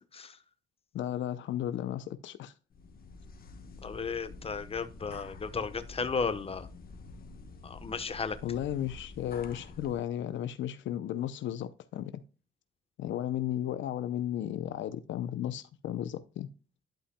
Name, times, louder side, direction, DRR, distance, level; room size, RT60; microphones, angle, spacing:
voice 1, 0.9-2.5 5.1-5.2 8.4-12.2 13.0-16.5, left 11 dB, 75° left, 0.6 m, -34 dB
sound 1, 2.7-10.0, left 3 dB, 45° left, 1.3 m, -48 dB
voice 2, 3.8-6.7 7.6-8.4, left 5 dB, 30° left, 1.0 m, -34 dB
11.5 x 5.5 x 2.2 m
cardioid pair, 90°, 20 cm